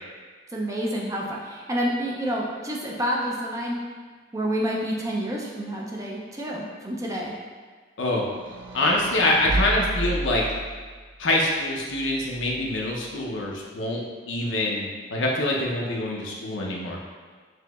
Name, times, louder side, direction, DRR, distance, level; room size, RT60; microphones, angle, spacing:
voice 1, 0.5-3.8 4.3-7.3, equal, 15° right, -2 dB, 0.4 m, -28 dB
sound 1, 8.3-11.0 11.9-12.9, right 2 dB, 75° right, 0.5 m, -32 dB
voice 2, 8.7-10.4 11.2-14.0 14.3-17.0, left 1 dB, 75° left, -2 dB, 0.6 m, -25 dB
5.9 x 2.8 x 2.3 m, 1.5 s
head